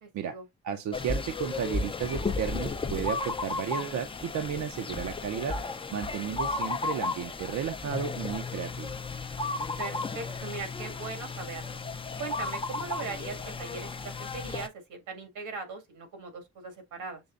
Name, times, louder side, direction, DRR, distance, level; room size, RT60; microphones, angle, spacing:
voice 1, 0.0-0.4 9.8-11.8 12.2-17.2, right 4 dB, 90° right, 1.9 m, -40 dB
voice 2, 0.6-5.6 5.9-8.9, right 8 dB, 65° right, 0.7 m, -33 dB
sound 1, 0.9-14.7, left 3 dB, 20° left, 0.5 m, -34 dB
7.0 x 3.0 x 2.4 m
cardioid pair, 90°, 30 cm